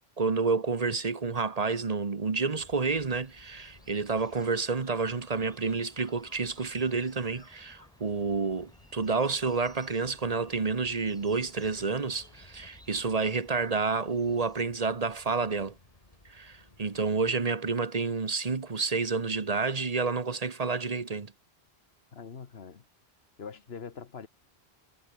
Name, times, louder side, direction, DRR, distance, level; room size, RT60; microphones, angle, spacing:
voice 1, 0.2-15.7 16.3-21.3, right 4 dB, 40° right, 1.2 m, -29 dB
sound 1, 2.5-17.3, left 2 dB, 35° left, 3.2 m, -58 dB
sound 2, 2.5-14.6, equal, 5° left, 7.4 m, -59 dB
voice 2, 22.1-22.8 23.4-24.3, left 6 dB, 75° left, 1.6 m, -43 dB
omnidirectional pair, 1.0 m